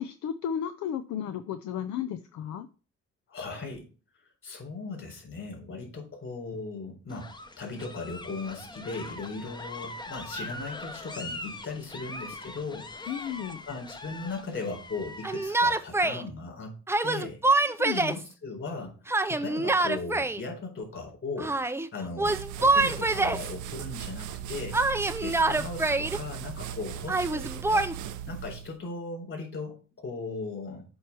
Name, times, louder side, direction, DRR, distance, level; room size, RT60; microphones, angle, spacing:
voice 1, 0.0-2.7 13.1-13.6 17.8-18.2, left 9 dB, 70° left, 10 dB, 0.6 m, -33 dB
voice 2, 3.3-3.9 4.4-7.3 7.6-13.1 13.7-16.7 17.0-17.5 17.9-18.9 19.3-21.5 21.9-24.8 25.2-30.9, left 3 dB, 45° left, 0 dB, 4.1 m, -38 dB
sound 1, 7.1-15.7, left 2 dB, 15° left, 0.8 m, -42 dB
Yell, 15.2-16.2 16.9-18.2 19.1-20.4 21.4-21.9 22.2-23.5 24.7-26.2 27.1-27.9, right 2 dB, 10° right, 0.4 m, -25 dB
sound 2, 22.2-28.8, right 10 dB, 80° right, 0.7 m, -38 dB
8.0 x 3.1 x 6.0 m, 0.36 s
cardioid pair, 90°, 30 cm